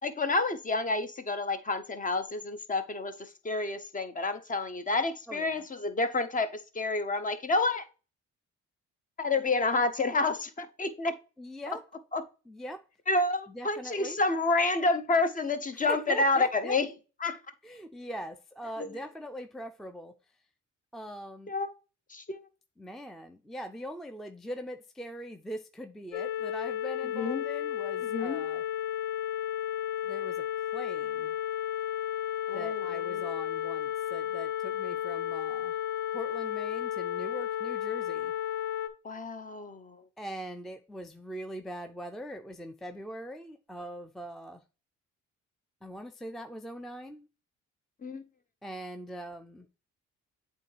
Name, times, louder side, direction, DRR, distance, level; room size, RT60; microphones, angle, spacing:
voice 1, 0.0-7.9 9.2-11.1 12.1-12.2 13.1-16.9 17.2-17.4 18.8-18.9 21.5-21.7 22.1-22.4 27.1-27.5 28.0-28.5 32.5-33.3 39.0-40.0 48.0-48.2, left 3 dB, 25° left, 0.7 m, -29 dB
voice 2, 5.3-5.6 11.4-11.8 12.5-12.8 13.5-14.2 15.9-16.8 17.6-20.1 20.9-21.5 22.8-28.6 30.0-30.4 30.7-31.3 32.5-35.7 36.1-38.3 40.2-44.6 45.8-47.3 48.6-49.7, equal, ahead, 0.4 m, -42 dB
sound 1, 26.1-38.9, left 11 dB, 70° left, 0.7 m, -33 dB
8.3 x 3.6 x 3.2 m
cardioid pair, 90°, 30 cm